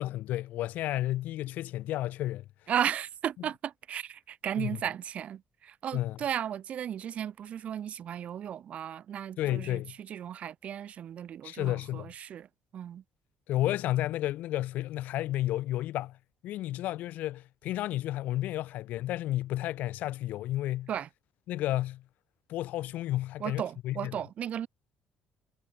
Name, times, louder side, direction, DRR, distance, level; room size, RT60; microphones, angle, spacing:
voice 1, 0.0-2.4 4.6-4.8 5.9-6.2 9.4-9.9 11.4-12.1 13.5-16.2 16.4-20.9 21.5-22.0 22.5-24.2, left 14 dB, 75° left, 2.1 m, -32 dB
voice 2, 2.7-12.5 12.7-13.0 20.9-21.1 23.4-24.7, right 9 dB, 50° right, 2.4 m, -35 dB
cardioid pair, 130°, 3 cm